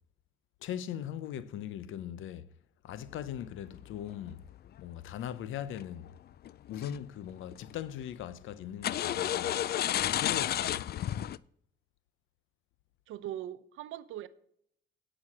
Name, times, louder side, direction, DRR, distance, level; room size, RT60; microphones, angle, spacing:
voice 1, 0.6-2.5 2.8-4.4 4.8-6.1 6.7-9.6 10.0-10.9, left 10 dB, 80° left, 0.7 m, -40 dB
sound 1, 3.1-4.6 5.7-6.1 6.4-7.0 7.3-7.8 8.8-11.4, left 11 dB, 55° left, 0.4 m, -32 dB
voice 2, 13.1-14.3, right 12 dB, 90° right, 0.8 m, -40 dB
9.8 x 6.3 x 6.1 m
cardioid pair, 90°, 20 cm